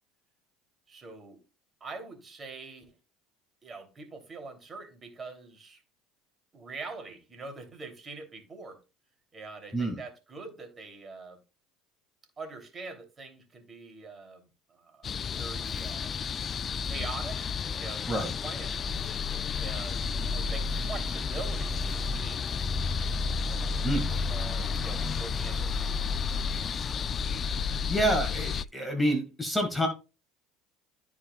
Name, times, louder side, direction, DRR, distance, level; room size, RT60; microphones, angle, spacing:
voice 1, 0.9-1.4 1.8-3.0 3.6-5.8 6.5-8.8 9.3-11.4 12.4-16.1 16.8-17.5 17.8-18.8 19.5-22.5 23.5-26.2, right 3 dB, 30° right, 2.9 m, -44 dB
sound 1, 15.0-28.6, left 5 dB, 35° left, 0.3 m, -31 dB
voice 2, 27.5-29.9, right 1 dB, 10° left, 2.0 m, -28 dB
13.5 x 4.8 x 2.3 m
supercardioid pair, 90°, 0 cm